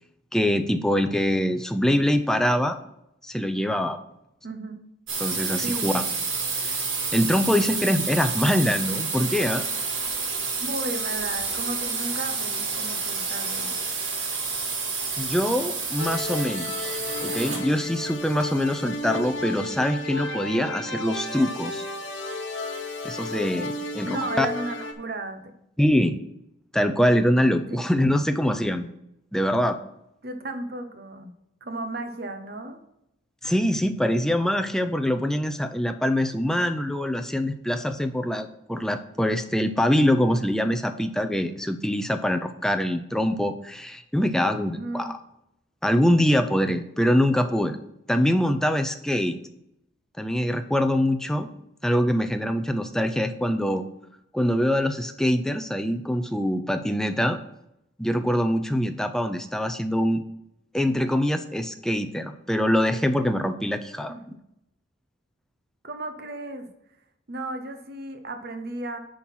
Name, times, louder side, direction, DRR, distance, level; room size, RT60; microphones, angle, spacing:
voice 1, 0.3-2.8 3.2-4.0 5.2-6.0 6.7-6.8 7.1-9.6 15.2-21.9 23.0-24.5 25.8-26.2 26.7-28.9 29.3-29.8 33.4-45.2 45.8-47.8 48.1-49.4 50.2-51.5 51.8-53.8 54.3-57.4 58.0-60.2 60.7-64.4, equal, 5° left, 7 dB, 0.5 m, -24 dB
voice 2, 4.4-4.8 5.6-5.9 10.6-13.7 24.0-25.5 27.7-27.8 30.2-31.3 31.6-32.8 44.7-45.1 64.1-64.2 65.8-66.7 67.3-69.0, right 2 dB, 55° right, 8 dB, 0.9 m, -34 dB
sound 1, 5.1-17.8, right 4 dB, 80° right, 2.2 m, -29 dB
sound 2, 16.0-24.9, left 2 dB, 70° left, 1.1 m, -33 dB
10.0 x 3.8 x 5.9 m, 0.81 s
head